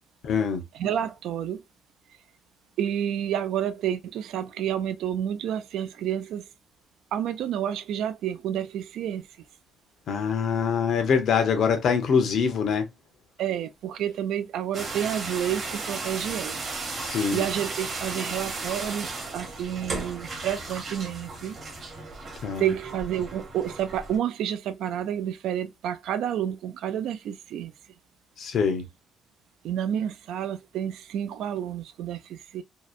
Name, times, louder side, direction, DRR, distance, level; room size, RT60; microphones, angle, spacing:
voice 1, 0.2-0.6 10.1-12.9 17.0-17.4 22.4-22.7 28.4-28.8, left 6 dB, 60° left, 0.7 m, -24 dB
voice 2, 0.7-1.6 2.8-6.4 7.1-9.3 13.4-16.6 17.3-21.6 22.6-27.7 29.6-32.6, right 10 dB, 85° right, 0.3 m, -29 dB
sound 1, 14.7-24.2, right 3 dB, 40° right, 0.8 m, -35 dB
2.7 x 2.0 x 2.4 m
cardioid pair, 145°, 0 cm